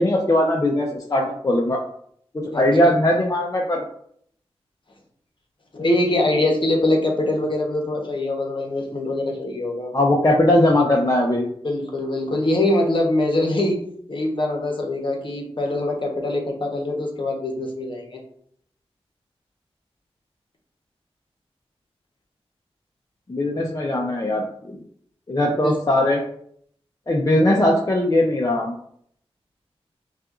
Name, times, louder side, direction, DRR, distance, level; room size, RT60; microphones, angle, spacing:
voice 1, 0.0-1.8 2.3-3.8 9.9-11.5 23.3-24.8 25.3-26.2 27.1-28.7, left 1 dB, 35° left, -1 dB, 0.7 m, -20 dB
voice 2, 5.7-9.9 11.6-13.8 14.1-18.2 25.5-25.7, left 1 dB, 50° left, 1 dB, 1.1 m, -23 dB
5.6 x 2.5 x 2.5 m, 0.65 s
cardioid pair, 45°, 11 cm